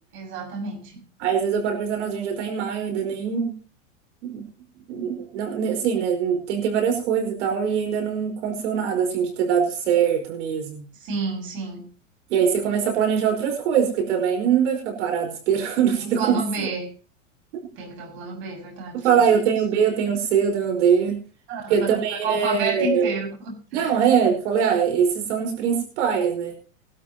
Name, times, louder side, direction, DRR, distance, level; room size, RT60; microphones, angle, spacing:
voice 1, 0.1-1.0 11.0-11.9 16.0-16.9 17.8-19.4 21.5-23.9, right 3 dB, 30° right, 1 dB, 6.7 m, -30 dB
voice 2, 1.2-3.6 4.2-4.5 4.9-10.8 12.3-16.7 18.9-21.2 21.7-23.2 23.7-26.5, right 7 dB, 65° right, 4 dB, 5.0 m, -22 dB
21.0 x 12.5 x 3.0 m, 0.38 s
supercardioid pair, 165°, 38 cm